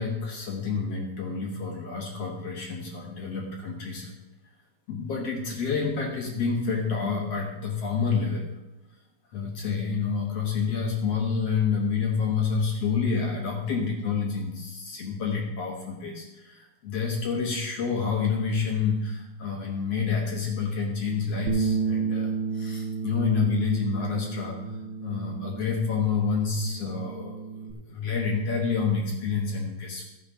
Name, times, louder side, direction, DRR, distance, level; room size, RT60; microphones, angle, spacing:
voice 1, 0.0-4.1 4.9-8.4 9.3-24.8 25.0-30.1, left 5 dB, 55° left, 0 dB, 1.9 m, -28 dB
Bass guitar, 21.5-27.7, right 5 dB, 75° right, 1.6 m, -32 dB
13.5 x 5.9 x 5.2 m, 1.0 s
omnidirectional pair, 4.1 m